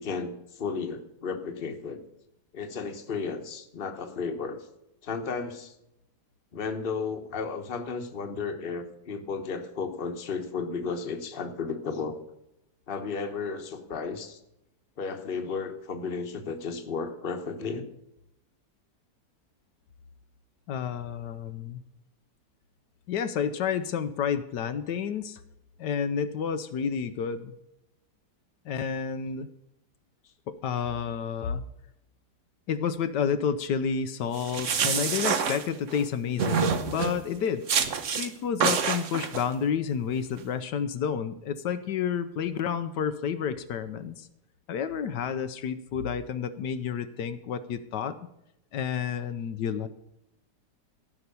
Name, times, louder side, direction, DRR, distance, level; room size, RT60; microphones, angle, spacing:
voice 1, 0.0-2.0 2.5-4.6 5.0-5.7 6.5-12.2 12.9-14.4 15.0-17.9 36.4-36.6, left 5 dB, 35° left, 6 dB, 1.2 m, -33 dB
voice 2, 20.7-21.8 23.1-25.4 25.8-27.5 28.6-29.5 30.5-31.6 32.7-37.7 38.1-44.3 44.7-48.2 48.7-49.9, left 7 dB, 80° left, 10 dB, 1.3 m, -30 dB
sound 1, 34.3-36.0 36.4-37.2 37.7-38.3 38.6-39.4, right 6 dB, 55° right, 1.2 m, -27 dB
15.0 x 6.1 x 6.9 m, 0.84 s
omnidirectional pair, 1.8 m